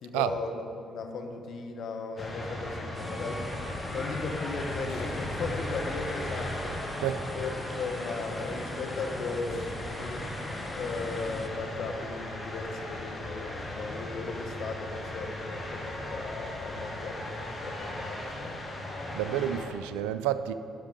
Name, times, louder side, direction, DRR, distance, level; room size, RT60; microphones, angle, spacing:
voice 1, 0.0-3.5 3.9-6.8 7.3-7.5 7.8-10.3 10.7-18.6, left 4 dB, 60° left, 4 dB, 1.0 m, -36 dB
sound 1, 2.2-19.7, left 1 dB, 35° left, 1.8 m, -37 dB
sound 2, 2.9-11.5, equal, 5° right, 0.8 m, -43 dB
sound 3, 4.8-13.1, equal, 80° left, 2.4 m, -51 dB
voice 2, 19.1-20.5, right 11 dB, 80° right, 12 dB, 0.3 m, -29 dB
10.5 x 6.0 x 5.2 m, 2.7 s
hypercardioid pair, 50°, 0 cm